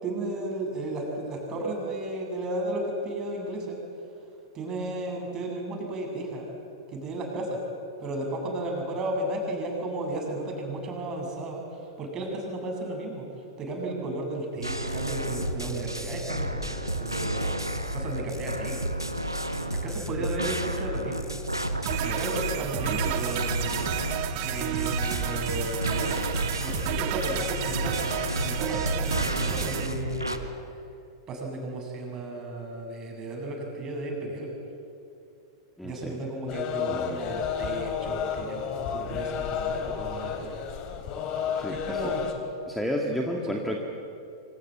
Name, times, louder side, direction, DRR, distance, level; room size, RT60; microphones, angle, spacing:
voice 1, 0.0-3.8 4.5-6.5 6.9-7.6 8.0-17.5 17.9-19.0 19.7-21.3 22.0-23.9 24.4-26.1 26.6-30.4 31.3-34.5 35.8-40.6 41.7-42.3, right 2 dB, 25° right, 1 dB, 7.5 m, -34 dB
sound 1, 14.6-30.4, equal, 90° right, 1.8 m, -31 dB
sound 2, 21.9-29.9, right 11 dB, 45° right, 1.9 m, -31 dB
voice 2, 35.8-36.2 36.9-37.2 41.6-42.1 42.7-43.8, equal, ahead, 0 dB, 2.2 m, -31 dB
sound 3, 36.5-42.3, left 7 dB, 35° left, 3.3 m, -31 dB
27.0 x 25.5 x 7.8 m, 2.6 s
figure-of-eight pair, 100°, 2 cm